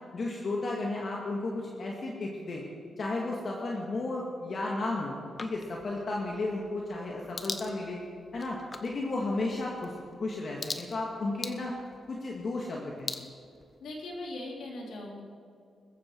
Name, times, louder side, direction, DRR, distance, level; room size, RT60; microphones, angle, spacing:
voice 1, 0.1-2.6 3.0-8.0 8.3-11.7 12.1-13.2, left 2 dB, 50° left, -2 dB, 2.2 m, -33 dB
sound 1, 5.4-14.2, left 3 dB, 35° left, 1.1 m, -44 dB
voice 2, 13.8-15.2, left 1 dB, 90° left, -1 dB, 3.6 m, -39 dB
20.5 x 14.5 x 4.8 m, 2.4 s
cardioid pair, 105°, 0 cm